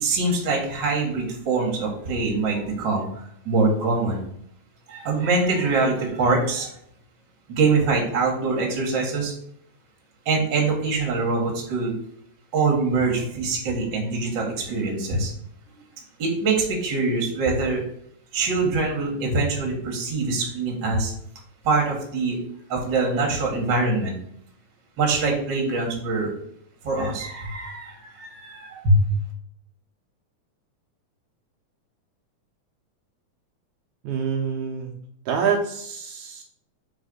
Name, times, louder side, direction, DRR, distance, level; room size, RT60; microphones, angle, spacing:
voice 1, 0.0-4.2 4.9-6.7 7.5-9.3 10.3-11.9 12.5-15.3 15.7-15.8 16.2-17.8 18.3-21.1 21.6-22.4 22.7-24.1 25.0-26.3 26.8-29.0, right 3 dB, 45° right, 0 dB, 1.8 m, -24 dB
voice 2, 34.0-34.9 35.3-36.4, right 6 dB, 80° right, 1 dB, 2.0 m, -26 dB
4.5 x 4.1 x 5.3 m, 0.69 s
omnidirectional pair, 3.5 m